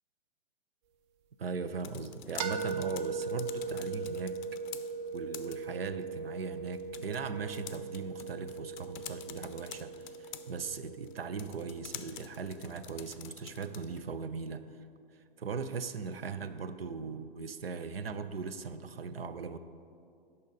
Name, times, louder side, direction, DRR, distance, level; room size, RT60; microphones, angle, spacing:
voice 1, 1.4-4.4 5.1-14.6 15.4-19.6, right 5 dB, 90° right, 12 dB, 0.5 m, -39 dB
sound 1, 1.6-14.1, left 10 dB, 50° left, 0.5 m, -49 dB
sound 2, 2.4-12.2, right 4 dB, 30° right, 0.4 m, -40 dB
6.5 x 5.4 x 5.2 m, 2.4 s
figure-of-eight pair, 115°, 29 cm